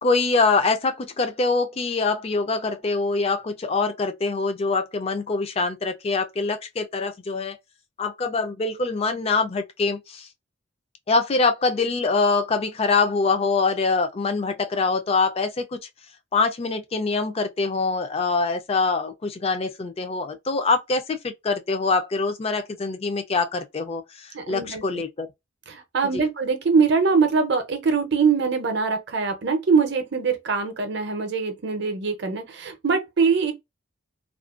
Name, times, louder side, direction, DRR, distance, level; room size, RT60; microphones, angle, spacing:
voice 1, 0.0-7.6 8.0-10.3 11.1-15.8 16.3-25.3 26.0-26.3, left 4 dB, 30° left, 0.3 m, -24 dB
voice 2, 24.3-24.8 25.7-33.5, right 5 dB, 60° right, 0.6 m, -23 dB
2.4 x 2.1 x 2.3 m
head